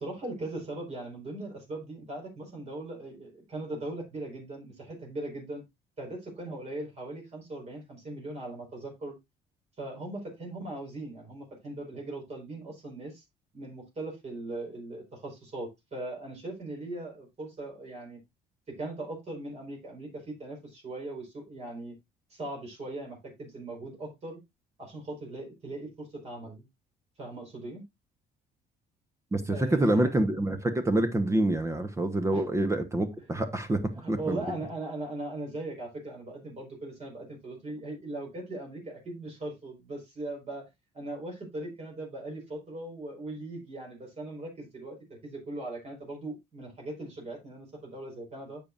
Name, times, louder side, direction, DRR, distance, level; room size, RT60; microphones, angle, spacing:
voice 1, 0.0-5.6 6.0-9.2 9.8-13.2 13.5-18.2 18.7-21.9 22.3-24.4 24.8-26.6 27.2-27.8 29.5-30.1 32.3-32.4 34.0-40.7 40.9-48.6, right 2 dB, 40° right, 4.6 m, -39 dB
voice 2, 29.3-33.8 34.1-34.4, right 1 dB, 15° right, 1.1 m, -26 dB
9.6 x 7.3 x 2.5 m
cardioid pair, 110°, 17 cm